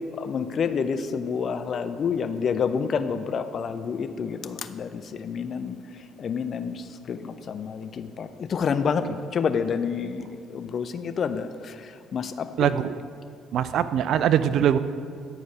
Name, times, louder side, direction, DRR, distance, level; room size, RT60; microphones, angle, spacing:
voice 1, 0.2-5.8 6.2-11.7 12.1-12.7, left 6 dB, 50° left, 10 dB, 0.5 m, -28 dB
voice 2, 12.6-13.0 13.5-14.8, right 9 dB, 65° right, 13 dB, 0.3 m, -22 dB
10.5 x 4.6 x 5.6 m, 2.2 s
hypercardioid pair, 50°, 0 cm